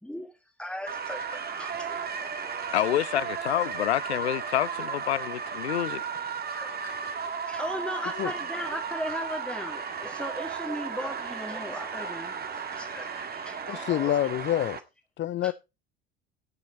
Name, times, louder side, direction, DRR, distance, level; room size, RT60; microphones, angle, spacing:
voice 1, 0.0-2.8 4.1-4.2 6.5-6.7 7.0-7.2 7.4-14.2 15.4-15.5, equal, 5° left, 2.1 m, -38 dB
sound 1, 0.9-14.8, right 6 dB, 30° right, 1.9 m, -35 dB
voice 2, 2.7-6.0 6.8-6.9, left 12 dB, 80° left, 0.5 m, -28 dB
sound 2, 5.0-13.5, right 4 dB, 75° right, 5.8 m, -63 dB
voice 3, 13.7-14.8 15.2-15.5, left 12 dB, 35° left, 0.7 m, -27 dB
18.0 x 6.1 x 4.1 m
figure-of-eight pair, 65°, 32 cm